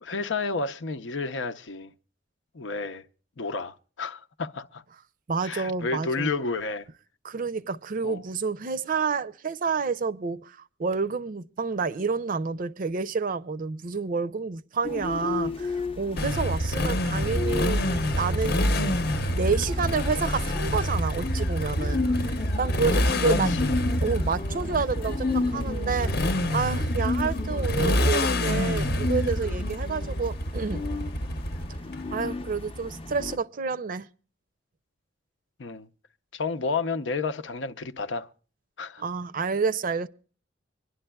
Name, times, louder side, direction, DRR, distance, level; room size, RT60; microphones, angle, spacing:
voice 1, 0.0-1.9 2.5-3.0 3.4-4.8 5.4-6.9 8.0-8.2 15.4-15.6 23.2-23.8 35.6-35.9 36.3-38.3 38.8-39.0, left 4 dB, 90° left, 0.7 m, -31 dB
voice 2, 5.3-6.3 7.2-17.8 18.2-23.5 23.9-30.8 32.1-34.1 39.0-40.1, right 5 dB, 50° right, 0.5 m, -29 dB
sound 1, 14.8-33.4, left 3 dB, 30° left, 0.6 m, -34 dB
Motorcycle, 16.2-31.9, equal, 60° left, 0.8 m, -27 dB
24.5 x 11.0 x 2.3 m
head